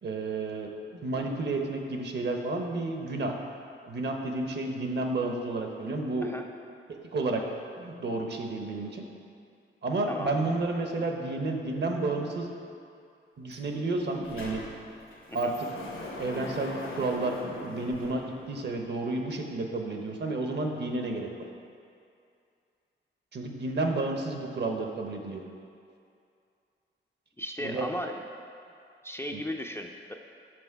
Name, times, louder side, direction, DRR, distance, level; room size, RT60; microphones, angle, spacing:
voice 1, 0.0-3.3 3.9-6.3 7.1-7.4 7.8-9.0 9.8-12.5 13.4-14.6 15.3-15.5 16.2-21.3 23.3-25.4 27.6-27.9 29.3-29.4, right 2 dB, 55° right, 3 dB, 0.8 m, -31 dB
Sliding door, 13.5-13.6 13.9-18.9, left 2 dB, 80° left, 1.1 m, -41 dB
voice 2, 27.4-28.2 29.0-30.1, equal, 10° left, 2 dB, 0.4 m, -36 dB
6.1 x 5.4 x 4.6 m, 2.5 s
cardioid pair, 85°, 21 cm